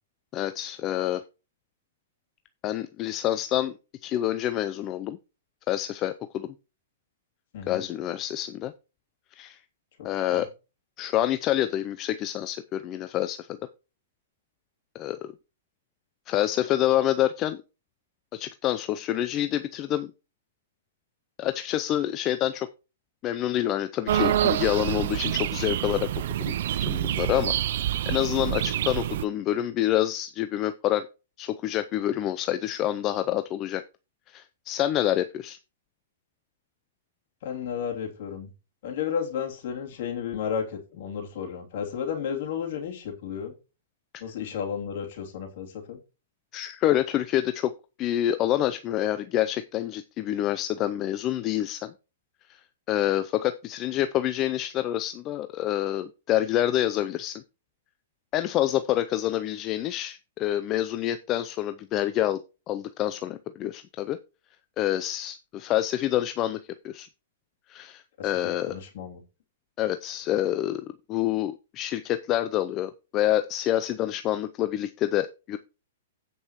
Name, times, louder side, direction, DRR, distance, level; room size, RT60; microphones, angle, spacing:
voice 1, 0.3-1.2 2.6-3.8 4.0-5.2 5.7-6.5 7.7-8.7 9.4-9.6 10.0-10.5 11.0-13.5 14.9-15.3 16.3-17.6 18.3-20.1 21.4-22.7 23.2-26.1 26.4-27.5 28.1-31.1 31.4-33.8 34.3-35.6 44.1-44.2 46.5-47.7 48.0-51.9 52.5-52.6 52.9-57.4 58.3-62.4 62.7-64.2 64.8-66.6 66.8-67.1 67.7-68.7 69.8-75.6, left 12 dB, 30° left, 11 dB, 0.5 m, -27 dB
voice 2, 7.5-7.8 10.0-10.5 37.4-38.5 38.8-43.5 44.2-46.0 68.2-69.2, left 7 dB, 60° left, 1 dB, 2.9 m, -33 dB
sound 1, 24.1-29.2, right 12 dB, 60° right, 0.4 m, -27 dB
16.0 x 5.4 x 3.0 m, 0.31 s
hypercardioid pair, 125°, 0 cm